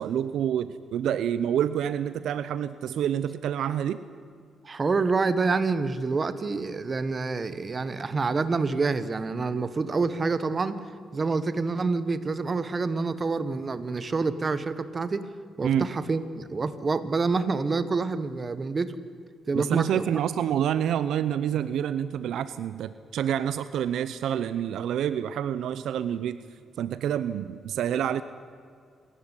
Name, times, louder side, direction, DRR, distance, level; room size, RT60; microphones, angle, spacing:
voice 1, 0.0-4.0 15.6-15.9 19.5-26.4 26.8-28.2, right 9 dB, 80° right, 14 dB, 0.7 m, -27 dB
voice 2, 4.6-10.8 11.1-15.3 15.6-19.0 19.5-20.1, right 4 dB, 35° right, 13 dB, 1.5 m, -27 dB
27.0 x 13.5 x 10.0 m, 2.2 s
cardioid pair, 85°, 0 cm